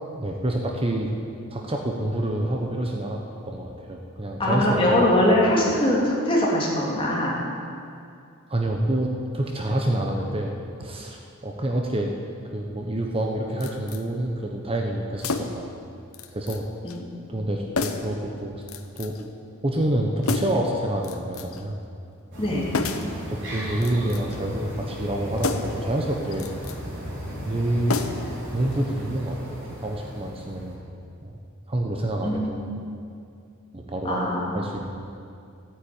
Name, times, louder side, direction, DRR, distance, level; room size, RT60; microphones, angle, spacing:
voice 1, 0.1-1.1 1.5-5.1 8.5-10.5 10.8-12.1 12.5-15.7 16.3-16.7 17.3-18.6 19.0-19.3 19.6-21.7 23.3-26.5 27.4-28.0 28.5-30.8 31.2-31.4 31.7-32.7 33.7-35.1, right 1 dB, 25° right, 1 dB, 1.1 m, -27 dB
voice 2, 4.4-7.4 16.8-17.2 22.4-22.7 32.2-32.7 34.0-34.6, left 1 dB, 25° left, -4 dB, 3.3 m, -22 dB
sound 1, 13.6-14.0 15.2-15.7 16.1-16.6 16.9-17.0 17.8-18.2 18.7-19.2 20.2-20.7 21.0-21.6 22.7-23.2 23.7-24.4 25.4-25.8 26.3-26.8 27.9-28.4 28.7-28.8, left 4 dB, 85° left, 1.0 m, -30 dB
sound 2, 22.3-30.7, equal, 60° right, 4.6 m, -36 dB
15.0 x 9.7 x 9.0 m, 2.4 s
head